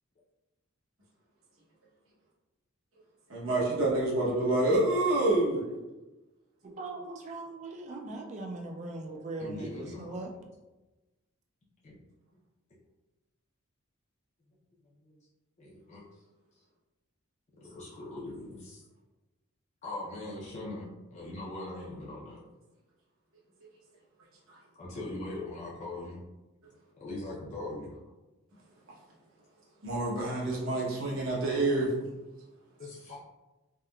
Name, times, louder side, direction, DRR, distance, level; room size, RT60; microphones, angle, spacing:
voice 1, 3.3-5.6 24.5-24.6 29.8-31.9, right 2 dB, 65° right, -6 dB, 0.8 m, -27 dB
voice 2, 6.6-10.3, right 2 dB, 35° right, 2 dB, 0.3 m, -40 dB
voice 3, 9.4-10.1 11.8-12.0 15.0-15.1 15.6-16.0 17.6-18.8 19.8-22.4 24.7-26.2 27.0-28.0 32.8-33.2, left 2 dB, 35° left, -6 dB, 0.4 m, -40 dB
3.5 x 2.1 x 2.2 m, 1.1 s
head